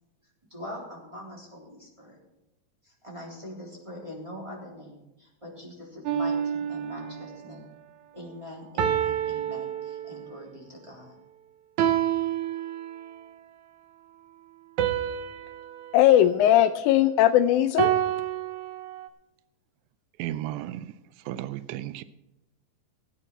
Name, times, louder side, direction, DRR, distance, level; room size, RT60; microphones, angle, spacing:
voice 1, 0.5-2.2 2.8-7.7 8.1-11.2, left 1 dB, 10° right, 2.9 m, -43 dB
sound 1, 6.1-7.4 8.8-10.4 11.8-13.2 14.8-17.2 17.8-19.1, right 10 dB, 70° right, 1.9 m, -29 dB
voice 2, 15.9-17.9, left 12 dB, 90° left, 1.7 m, -19 dB
voice 3, 20.2-20.9 21.3-22.0, right 13 dB, 85° right, 1.7 m, -33 dB
17.0 x 9.0 x 4.5 m
omnidirectional pair, 4.1 m